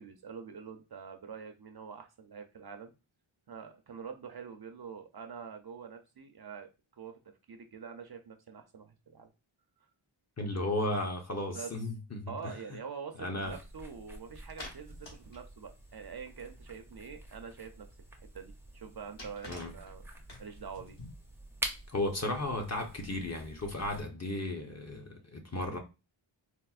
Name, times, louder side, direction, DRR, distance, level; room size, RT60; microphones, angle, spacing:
voice 1, 0.0-2.9 3.5-6.7 7.0-7.2 7.5-9.3 11.5-11.7 12.3-17.9 18.2-20.0 20.4-21.0, right 6 dB, 50° right, 0.5 m, -45 dB
voice 2, 10.4-12.5 13.2-13.6 19.5-19.7 21.9-25.8, left 1 dB, 30° left, 0.7 m, -34 dB
sound 1, 13.4-24.0, right 1 dB, 5° right, 0.5 m, -47 dB
sound 2, 13.7-23.2, left 2 dB, 60° left, 1.4 m, -54 dB
4.2 x 2.0 x 2.4 m
wide cardioid pair, 75°, 50 cm